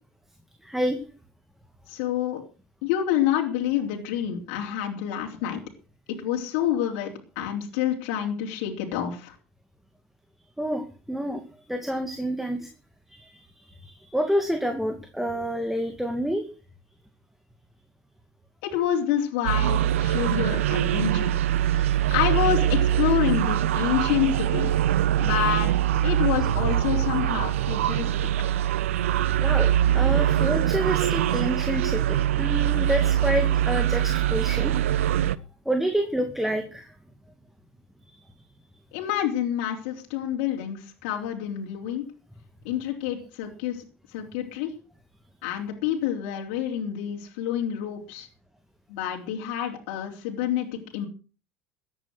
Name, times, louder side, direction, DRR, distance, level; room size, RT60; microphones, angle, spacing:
voice 1, 0.6-1.0 10.6-11.4 11.7-12.7 13.1-16.5 21.7-22.0 29.4-34.7 35.7-36.9, equal, 5° right, 5 dB, 2.5 m, -28 dB
voice 2, 1.9-2.4 2.8-5.6 6.1-9.3 18.6-21.3 21.7-24.7 25.2-25.7 26.0-28.3 38.9-42.0 42.6-43.8 44.1-44.7 45.4-48.3 48.9-51.1, left 10 dB, 70° left, -1 dB, 3.6 m, -28 dB
sound 1, 19.5-35.4, right 11 dB, 85° right, 0.7 m, -23 dB
15.0 x 10.0 x 6.3 m, 0.36 s
hypercardioid pair, 80°, 7 cm